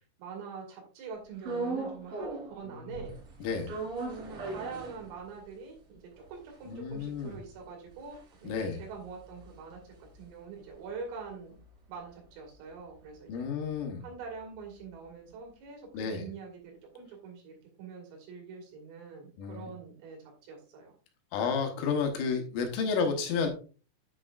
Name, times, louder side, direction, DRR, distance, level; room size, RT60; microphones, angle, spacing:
voice 1, 0.2-3.1 4.0-6.0 6.3-9.8 10.2-11.5 11.9-13.5 14.0-20.9, right 5 dB, 80° right, 1 dB, 5.0 m, -44 dB
sound 1, 1.4-2.6 2.9-5.5 5.9-6.0 6.2-10.7 11.0-15.1, right 3 dB, 50° right, 3.3 m, -40 dB
voice 2, 2.7-3.1 3.4-3.7 6.7-7.4 8.4-8.8 13.3-14.0 15.9-16.3 19.4-19.7 21.3-23.5, left 5 dB, 75° left, 4 dB, 3.7 m, -31 dB
9.7 x 6.8 x 2.5 m, 0.36 s
omnidirectional pair, 5.9 m